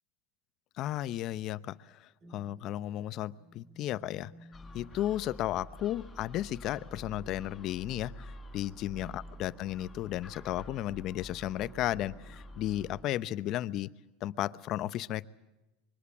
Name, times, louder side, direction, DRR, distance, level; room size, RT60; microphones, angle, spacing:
voice 1, 0.8-4.3 4.7-13.9 14.2-15.2, left 13 dB, 50° left, 16 dB, 0.8 m, -34 dB
sound 1, 2.2-5.3 6.9-9.9 11.6-13.8, right 1 dB, 35° right, 6.7 m, -58 dB
Gull seagull, 4.5-13.0, left 1 dB, 15° left, 4.3 m, -48 dB
25.0 x 23.0 x 7.3 m, 1.0 s
supercardioid pair, 105°, 0 cm